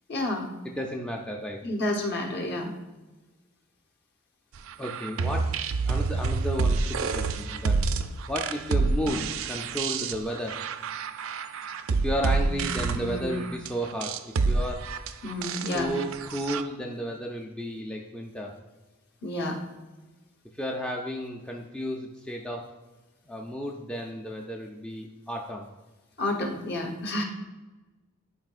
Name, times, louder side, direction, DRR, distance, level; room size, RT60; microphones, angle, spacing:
voice 1, 0.1-0.5 1.6-2.7 12.5-12.6 13.0-13.4 15.2-15.9 19.2-19.6 26.2-27.2, left 1 dB, 45° left, 2 dB, 1.0 m, -30 dB
voice 2, 0.6-1.6 4.8-5.5 5.9-7.8 8.3-10.6 12.0-14.9 15.7-18.5 20.5-22.7 23.3-25.6, equal, 5° left, -1 dB, 0.4 m, -33 dB
sound 1, 4.7-16.6, right 4 dB, 65° right, 0.4 m, -28 dB
11.0 x 4.8 x 2.5 m, 1.2 s
head